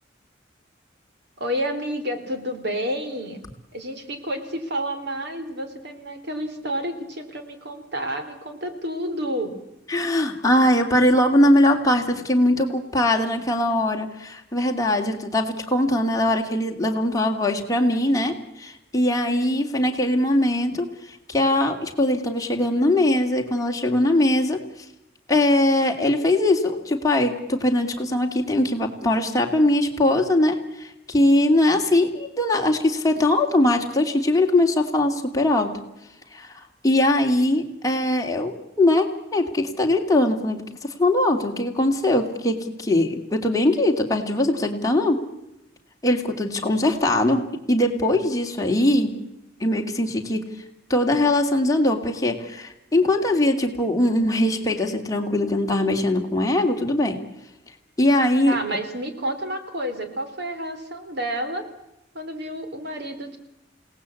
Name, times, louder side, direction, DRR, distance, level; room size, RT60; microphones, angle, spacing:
voice 1, 1.4-3.4 3.7-9.6 58.5-61.7 62.1-63.4, equal, 60° right, 7 dB, 3.6 m, -30 dB
voice 2, 9.9-20.9 21.3-24.6 25.3-35.7 36.3-36.5 36.8-40.6 41.0-45.2 46.0-49.2 49.6-50.4 50.9-57.2 58.0-58.6, left 1 dB, 20° left, 2 dB, 2.7 m, -21 dB
28.5 x 18.5 x 8.5 m, 0.89 s
head